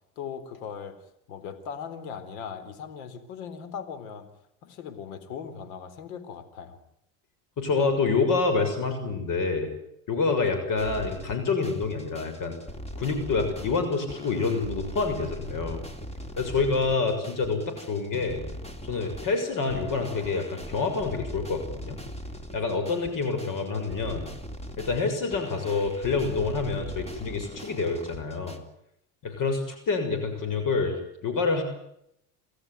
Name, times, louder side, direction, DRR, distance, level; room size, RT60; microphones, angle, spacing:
voice 1, 0.2-1.0 1.3-4.3 4.6-6.8, left 7 dB, 85° left, 11 dB, 3.9 m, -39 dB
voice 2, 7.6-9.7 10.1-12.5 13.0-15.8 16.4-18.4 18.8-22.0 22.5-24.3 24.8-28.6 29.2-31.6, left 4 dB, 50° left, 7 dB, 6.5 m, -27 dB
sound 1, 10.8-28.6, equal, 15° left, 3.7 m, -40 dB
29.0 x 13.5 x 9.6 m, 0.77 s
supercardioid pair, 90°, 41 cm